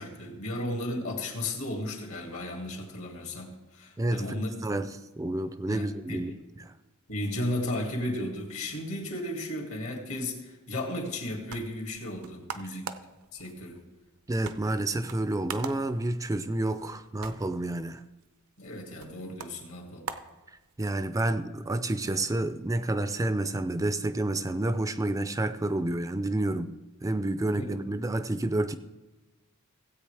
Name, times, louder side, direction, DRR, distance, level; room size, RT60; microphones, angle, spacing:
voice 1, 0.0-4.5 5.7-6.3 7.1-12.9 13.3-13.8 18.6-20.1 27.4-27.8, left 1 dB, 70° left, 1 dB, 2.3 m, -34 dB
voice 2, 4.0-4.9 5.2-6.3 6.6-6.7 14.3-18.0 20.8-26.7 27.0-28.8, right 2 dB, 15° right, 10 dB, 0.4 m, -29 dB
sound 1, 11.1-21.1, right 6 dB, 90° right, 0.7 m, -45 dB
17.0 x 8.2 x 3.4 m, 1.1 s
head